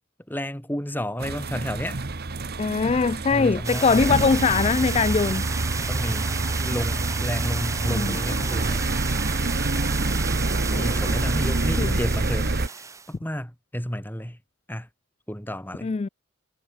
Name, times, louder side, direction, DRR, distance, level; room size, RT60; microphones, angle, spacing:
voice 1, 0.3-2.0 3.3-4.2 5.9-6.4 6.6-9.0 10.7-14.4 14.7-14.9 15.3-15.9, equal, 10° left, 4.7 m, -31 dB
sound 1, 1.2-12.7, right 2 dB, 50° right, 1.1 m, -27 dB
voice 2, 2.6-5.5 7.9-8.1 10.7-10.9 11.8-12.0 15.8-16.1, left 5 dB, 30° left, 0.3 m, -22 dB
sound 2, 3.6-13.1, right 5 dB, 15° right, 0.7 m, -33 dB
head